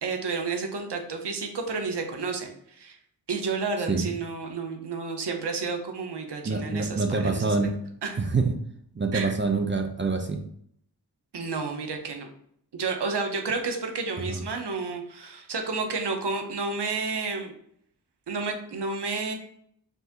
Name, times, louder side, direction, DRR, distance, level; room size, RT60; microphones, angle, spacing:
voice 1, 0.0-3.0 3.3-7.6 8.0-8.3 9.1-9.3 11.3-12.3 12.7-17.5 18.3-19.3, right 4 dB, 80° right, 4 dB, 0.9 m, -31 dB
voice 2, 6.4-7.7 8.2-8.5 8.9-10.4 14.3-14.4, right 3 dB, 30° right, 4 dB, 0.6 m, -26 dB
4.7 x 2.6 x 3.8 m, 0.68 s
wide cardioid pair, 70°, 41 cm